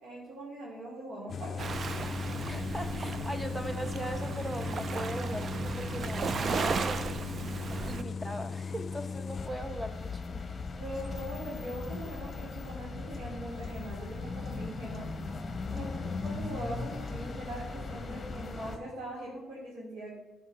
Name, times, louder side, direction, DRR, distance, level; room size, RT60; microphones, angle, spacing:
voice 1, 0.0-2.0 10.8-15.1 15.7-20.2, right 1 dB, 75° right, -4 dB, 2.8 m, -41 dB
sound 1, 1.3-9.5, left 5 dB, 50° left, 0.5 m, -37 dB
Waves surf, 1.6-8.0, right 5 dB, 50° right, 0.5 m, -35 dB
voice 2, 2.4-7.3 7.8-10.4 15.7-16.1, right 1 dB, 5° right, 9 dB, 1.0 m, -39 dB
sound 2, 9.3-18.8, left 4 dB, 30° left, 1.3 m, -38 dB
11.5 x 5.1 x 6.6 m, 1.0 s
cardioid pair, 90°, 0 cm